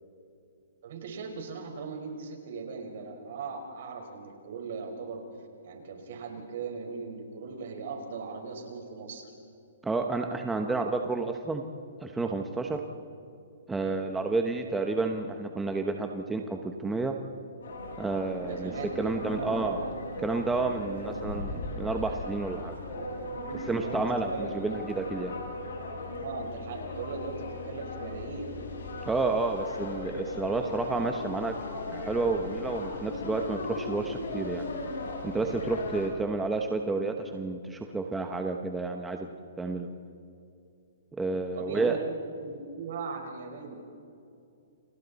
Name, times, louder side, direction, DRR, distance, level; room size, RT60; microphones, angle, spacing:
voice 1, 0.8-5.2 5.6-9.3 18.4-19.9 21.0-21.4 22.8-23.9 24.3-24.5 26.2-28.5 41.5-42.1 42.4-43.8, right 4 dB, 60° right, 3 dB, 4.8 m, -39 dB
voice 2, 9.8-11.6 12.0-12.8 13.7-17.1 18.0-19.8 20.2-22.8 23.7-25.3 29.1-31.6 31.9-34.6 35.2-39.3 39.6-39.9 41.2-42.0, right 3 dB, 5° right, 4 dB, 1.0 m, -30 dB
sound 1, 17.6-36.1, left 2 dB, 80° left, 7.9 m, -38 dB
29.5 x 29.0 x 4.2 m, 2.6 s
hypercardioid pair, 155°, 0 cm